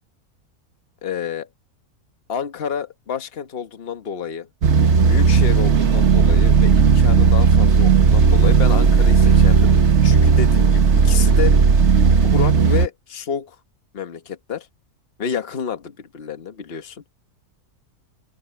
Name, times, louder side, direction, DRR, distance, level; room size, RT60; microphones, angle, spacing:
voice 1, 1.0-1.5 2.3-4.5 5.1-11.5 12.3-13.6 13.9-14.7 15.2-17.0, left 7 dB, 40° left, 1.4 m, -29 dB
sound 1, 4.6-12.9, right 5 dB, 50° right, 1.4 m, -14 dB
open air
omnidirectional pair, 1.6 m